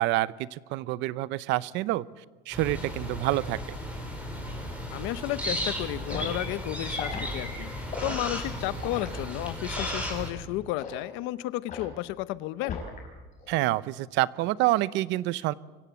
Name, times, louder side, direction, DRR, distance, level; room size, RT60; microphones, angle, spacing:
voice 1, 0.0-2.0 2.5-3.6 13.5-15.5, right 17 dB, 70° right, 18 dB, 0.7 m, -27 dB
sound 1, 2.5-10.3, equal, 5° right, 4.8 m, -35 dB
voice 2, 4.9-7.7 8.0-12.8, left 16 dB, 85° left, 16 dB, 0.9 m, -32 dB
Liquid, 6.1-6.3 6.9-7.3 7.9-8.2 8.8-9.1 9.7-10.0 10.8-11.0 11.7-12.0 12.6-13.1 13.4-13.7, left 5 dB, 40° left, 5.4 m, -37 dB
24.5 x 16.0 x 8.2 m, 1.4 s
cardioid pair, 170°, 19 cm